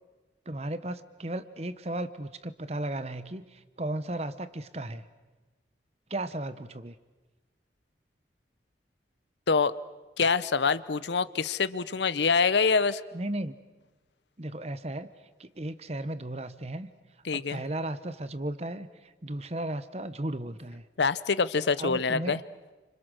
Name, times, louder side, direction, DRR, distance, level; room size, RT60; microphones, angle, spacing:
voice 1, 0.5-5.0 6.1-7.0 13.1-13.6 14.4-15.1 15.4-16.9 17.3-20.9 21.8-22.4, right 1 dB, 35° right, 13 dB, 1.0 m, -35 dB
voice 2, 10.2-13.0 17.2-17.6 21.0-22.4, left 5 dB, 80° left, 16 dB, 0.7 m, -25 dB
30.0 x 26.5 x 6.4 m, 1.2 s
head